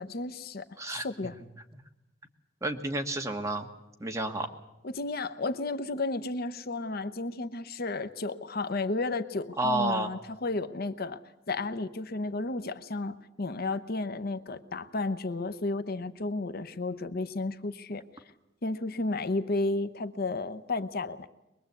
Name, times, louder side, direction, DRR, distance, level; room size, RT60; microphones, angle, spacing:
voice 1, 0.0-1.4 4.8-11.2 11.5-18.0 18.6-21.3, left 2 dB, 55° left, 11 dB, 0.9 m, -33 dB
voice 2, 0.8-1.3 1.7-1.8 2.6-3.7 4.0-4.5 9.6-10.1, right 2 dB, 15° right, 4 dB, 1.7 m, -30 dB
23.5 x 21.5 x 8.3 m, 0.96 s
head